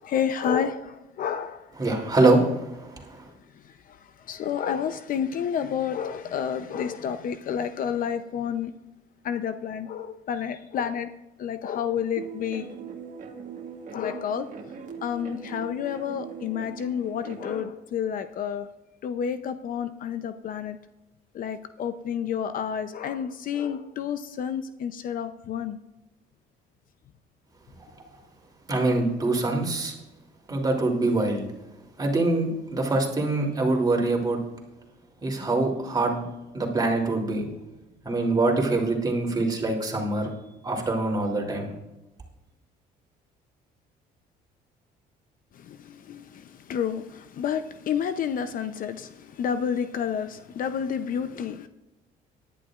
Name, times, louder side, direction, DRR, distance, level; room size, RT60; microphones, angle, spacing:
voice 1, 0.0-1.7 3.9-4.0 4.3-8.7 9.2-11.1 11.4-12.7 13.9-14.5 15.0-18.7 19.0-20.8 21.3-25.8 45.6-51.7, left 8 dB, 55° left, 0.7 m, -30 dB
voice 2, 1.8-2.7 3.1-3.2 28.7-29.9 30.5-31.4 32.0-34.4 35.2-36.2 36.5-37.5 38.0-40.3 40.6-41.7, right 2 dB, 25° right, 3.0 m, -24 dB
sound 1, 12.2-17.6, right 6 dB, 50° right, 1.7 m, -40 dB
18.0 x 11.0 x 2.5 m
cardioid pair, 110°, 17 cm